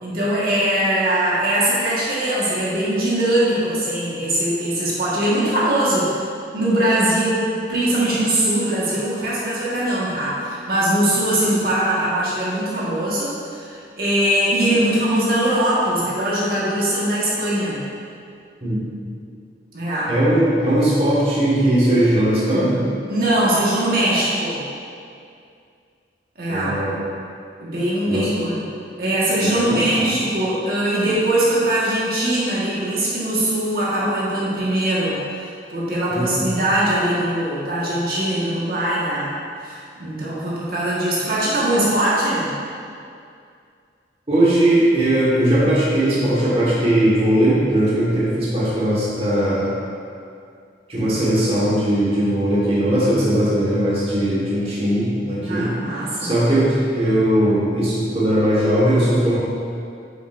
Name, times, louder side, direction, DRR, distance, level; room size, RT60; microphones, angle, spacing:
voice 1, 0.0-6.2 6.5-17.8 19.7-20.1 23.1-24.6 26.4-26.8 27.6-28.6 29.0-35.2 35.7-39.3 39.6-42.5 55.4-56.3, right 1 dB, 55° right, -8 dB, 1.6 m, -21 dB
voice 2, 20.1-22.8 26.5-27.0 28.1-28.3 29.4-30.1 36.1-36.5 44.3-49.7 50.9-55.7 56.2-59.4, right 1 dB, 35° right, -8 dB, 1.6 m, -19 dB
8.9 x 7.0 x 2.6 m, 2.4 s
head